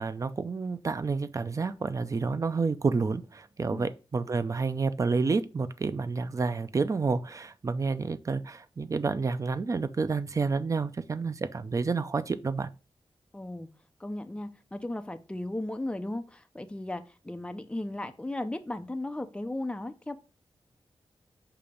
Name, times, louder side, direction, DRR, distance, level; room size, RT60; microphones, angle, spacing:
voice 1, 0.0-12.7, right 4 dB, 35° right, 0.4 m, -29 dB
voice 2, 13.3-13.7 14.0-20.1, left 1 dB, 10° left, 0.6 m, -36 dB
6.8 x 2.9 x 5.1 m
wide cardioid pair, 140°, 10 cm